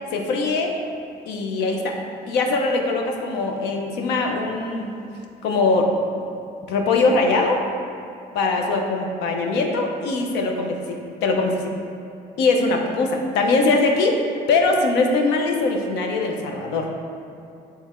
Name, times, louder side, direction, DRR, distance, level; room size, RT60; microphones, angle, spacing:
voice 1, 0.1-0.7 1.3-2.0 2.3-5.0 5.4-5.9 6.7-7.6 8.3-11.7 12.4-14.2 14.5-16.9, left 3 dB, 90° left, 2 dB, 0.8 m, -21 dB
8.1 x 3.5 x 4.3 m, 2.7 s
cardioid pair, 110°, 17 cm